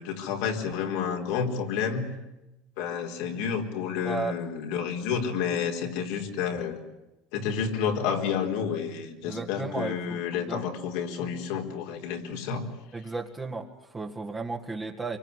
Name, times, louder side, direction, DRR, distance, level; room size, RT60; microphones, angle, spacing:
voice 1, 0.0-2.0 2.8-6.8 7.3-12.6, left 7 dB, 75° left, 3 dB, 4.3 m, -30 dB
voice 2, 4.0-4.4 9.2-10.7 12.9-15.2, right 4 dB, 15° right, 0 dB, 1.9 m, -34 dB
25.0 x 23.5 x 9.8 m, 0.98 s
supercardioid pair, 115°, 0 cm